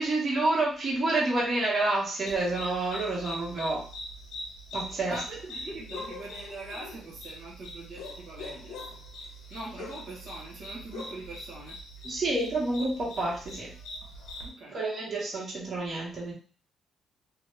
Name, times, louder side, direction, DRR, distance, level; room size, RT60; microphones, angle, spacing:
voice 1, 0.0-3.8 4.7-5.2 12.0-13.7 14.7-16.3, right 2 dB, 40° right, -4 dB, 1.0 m, -28 dB
sound 1, 2.3-14.5, left 1 dB, 85° left, 0.6 m, -42 dB
voice 2, 5.1-8.8 9.5-11.8 14.4-14.8, right 2 dB, 70° right, -4 dB, 1.0 m, -42 dB
2.6 x 2.1 x 3.2 m, 0.41 s
cardioid pair, 90°, 0 cm